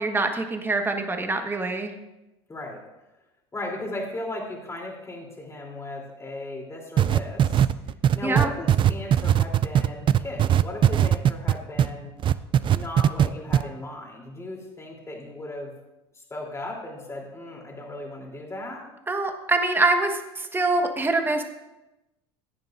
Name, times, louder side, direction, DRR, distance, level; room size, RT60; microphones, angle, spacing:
voice 1, 0.0-1.9 8.2-8.5 19.1-21.4, right 2 dB, 15° right, 5 dB, 1.4 m, -24 dB
voice 2, 2.5-2.8 3.5-7.7 8.1-12.1 12.7-15.7 16.1-18.8, left 1 dB, 20° left, -1 dB, 3.3 m, -36 dB
sound 1, 7.0-11.9 12.2-13.3 13.5-13.6, right 10 dB, 35° right, 0.4 m, -19 dB
16.0 x 9.1 x 2.6 m, 1.0 s
hypercardioid pair, 85°, 14 cm